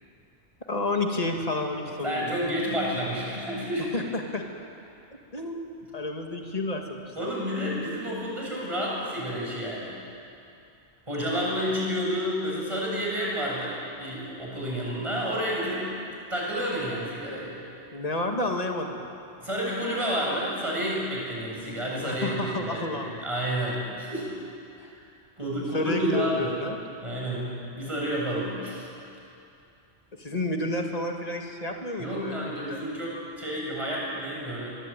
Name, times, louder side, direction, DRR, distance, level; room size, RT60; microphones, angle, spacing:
voice 1, 0.7-2.4 3.8-4.4 5.3-7.3 17.9-19.0 22.0-23.2 24.8-24.9 25.7-26.8 30.2-32.8, left 2 dB, 35° left, 2 dB, 2.3 m, -30 dB
voice 2, 1.9-3.9 7.2-10.0 11.1-15.8 16.3-17.5 19.4-24.3 24.8-25.0 25.4-26.5 27.0-28.9 32.0-34.7, equal, 25° right, -4 dB, 7.8 m, -30 dB
25.0 x 22.0 x 9.2 m, 2.6 s
omnidirectional pair, 1.2 m